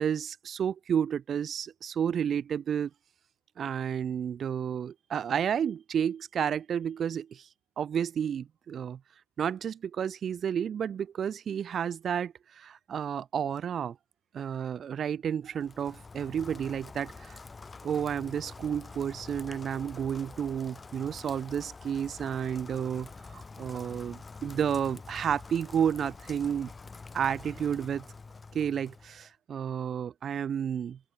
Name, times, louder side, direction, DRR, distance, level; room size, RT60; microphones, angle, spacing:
voice 1, 0.0-2.9 3.6-7.5 7.8-9.0 9.4-14.0 14.3-17.4 17.8-26.7 27.1-28.0 28.5-31.0, right 8 dB, 25° right, 0.9 m, -31 dB
Rain, 15.5-29.3, left 4 dB, 10° left, 1.3 m, -47 dB
hypercardioid pair, 105°, 0 cm